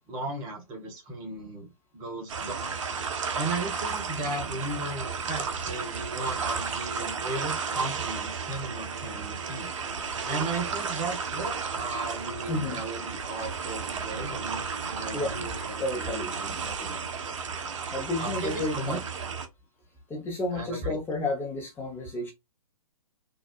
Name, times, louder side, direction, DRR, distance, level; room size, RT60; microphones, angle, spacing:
voice 1, 0.0-2.7 3.3-9.7 10.2-17.7 18.2-19.0 20.5-21.0, right 2 dB, 25° right, 1.1 m, -36 dB
sound 1, 2.3-19.5, right 5 dB, 55° right, 0.8 m, -33 dB
voice 2, 12.5-12.8 15.1-15.3 15.8-16.3 17.0-17.1 17.9-19.0 20.1-22.3, left 2 dB, 10° left, 1.0 m, -31 dB
4.0 x 2.5 x 2.4 m
figure-of-eight pair, 125°, 19 cm